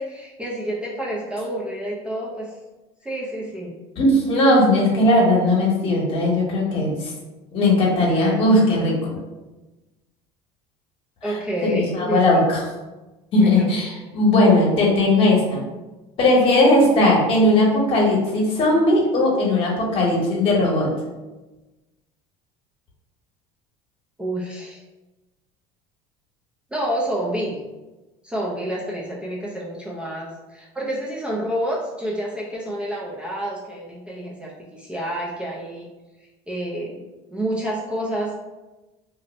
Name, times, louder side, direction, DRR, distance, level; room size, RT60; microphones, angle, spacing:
voice 1, 0.0-2.6 3.0-3.8 11.2-12.5 13.4-13.7 24.2-24.8 26.7-27.6 28.2-35.9 36.5-38.3, right 1 dB, 10° right, -5 dB, 0.4 m, -29 dB
voice 2, 4.0-7.1 7.5-9.2 11.2-11.3 11.6-12.6 13.3-15.6 16.2-20.9, left 1 dB, 45° left, -2 dB, 1.0 m, -18 dB
2.6 x 2.0 x 4.0 m, 1.1 s
cardioid pair, 135°, 14 cm